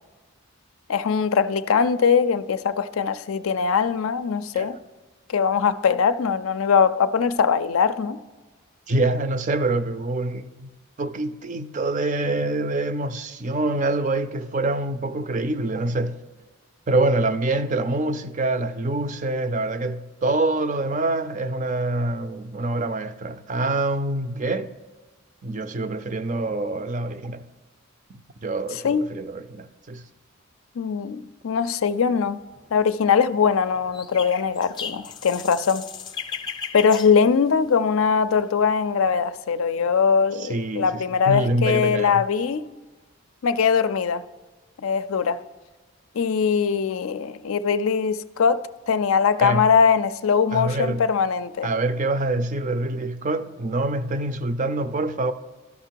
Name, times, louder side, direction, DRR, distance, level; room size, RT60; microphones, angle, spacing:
voice 1, 0.9-4.8 5.3-8.2 28.8-29.0 30.8-32.4 32.7-35.9 36.7-42.7 43.4-44.2 44.8-45.4 46.1-51.7, left 6 dB, 75° left, 0.4 m, -21 dB
voice 2, 8.9-10.7 11.0-16.2 16.9-24.7 25.4-27.5 28.1-30.1 40.4-42.2 49.4-49.7 50.5-51.1 51.6-55.3, right 2 dB, 35° right, 0.4 m, -25 dB
sound 1, 32.2-32.7 33.4-38.0 38.4-39.1, left 6 dB, 20° left, 0.4 m, -36 dB
12.5 x 5.8 x 4.6 m
head